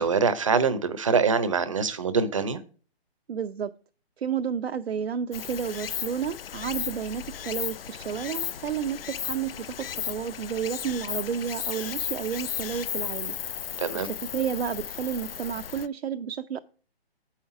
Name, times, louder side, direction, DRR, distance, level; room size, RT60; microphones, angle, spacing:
voice 1, 0.0-2.6 13.8-14.1, right 5 dB, 30° right, 0.7 m, -24 dB
voice 2, 3.3-3.7 4.2-13.4 13.9-16.6, right 7 dB, 70° right, 0.6 m, -31 dB
Stream, 5.3-15.9, left 8 dB, 65° left, 0.5 m, -35 dB
8.6 x 5.7 x 4.8 m
hypercardioid pair, 170°, 32 cm